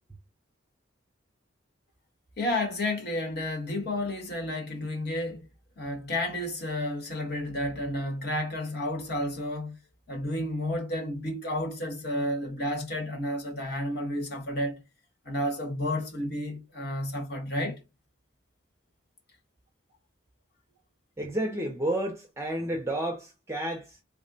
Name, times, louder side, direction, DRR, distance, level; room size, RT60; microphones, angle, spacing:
voice 1, 2.4-5.5 5.8-9.7 10.1-14.8 15.2-17.8, left 1 dB, 50° left, 1.1 m, -31 dB
voice 2, 21.2-24.0, right 1 dB, 15° right, 0.5 m, -31 dB
3.6 x 2.1 x 3.8 m
head